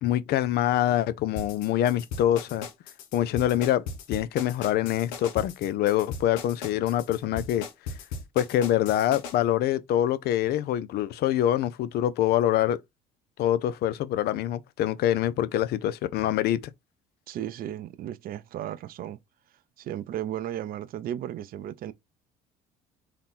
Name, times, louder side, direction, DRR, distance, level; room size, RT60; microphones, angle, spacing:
voice 1, 0.0-2.7 3.1-3.8 4.1-7.6 8.4-12.8 13.4-16.6, left 12 dB, 65° left, 0.6 m, -25 dB
sound 1, 1.4-9.3, left 4 dB, 85° left, 0.9 m, -37 dB
voice 2, 17.3-19.2 19.8-21.9, right 11 dB, 55° right, 0.6 m, -35 dB
3.8 x 2.9 x 3.6 m
supercardioid pair, 75°, 18 cm